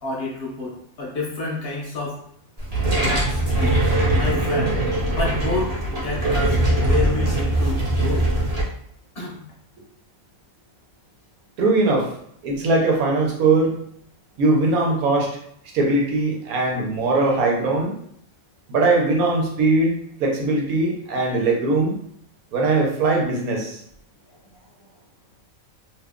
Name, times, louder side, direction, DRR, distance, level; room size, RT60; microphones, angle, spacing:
voice 1, 0.0-2.2 3.0-3.8 4.1-4.8 5.1-8.3 9.1-9.5 24.5-24.9, left 2 dB, 50° left, -3 dB, 0.9 m, -29 dB
sound 1, 2.6-8.6, right 1 dB, 30° right, 0.9 m, -21 dB
voice 2, 11.6-12.1 12.4-13.7 14.4-15.3 15.7-18.0 18.7-21.9 22.5-23.8, right 3 dB, 90° right, 0 dB, 1.2 m, -20 dB
2.7 x 2.3 x 3.5 m, 0.67 s
omnidirectional pair, 1.5 m